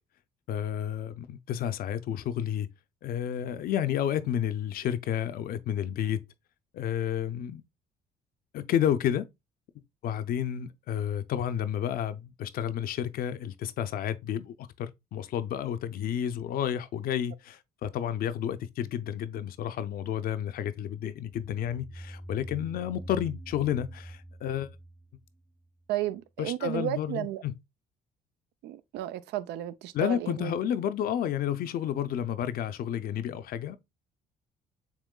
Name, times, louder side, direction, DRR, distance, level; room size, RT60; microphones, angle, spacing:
voice 1, 0.5-2.7 3.0-6.2 6.7-7.6 8.5-9.3 10.0-24.7 26.4-27.6 29.9-33.8, left 10 dB, 60° left, 0.5 m, -31 dB
sound 1, 21.3-25.8, right 1 dB, 5° right, 0.4 m, -44 dB
voice 2, 25.9-27.4 28.6-30.5, right 13 dB, 80° right, 0.5 m, -33 dB
7.3 x 3.0 x 2.2 m
cardioid pair, 110°, 17 cm